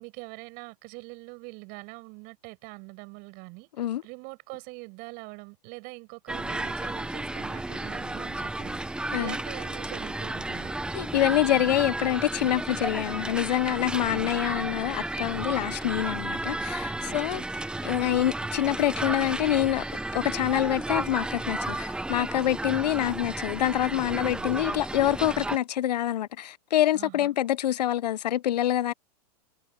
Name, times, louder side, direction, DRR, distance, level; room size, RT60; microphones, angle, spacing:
voice 1, 0.0-10.8 13.9-14.3 15.6-15.7 17.0-17.4 24.1-24.5 26.9-27.3, right 29 dB, 45° right, 6.1 m, -44 dB
sound 1, 6.3-25.6, right 2 dB, 5° right, 0.9 m, -33 dB
voice 2, 10.9-17.4 17.8-19.8 20.1-28.9, left 12 dB, 75° left, 0.8 m, -26 dB
hypercardioid pair, 120°, 21 cm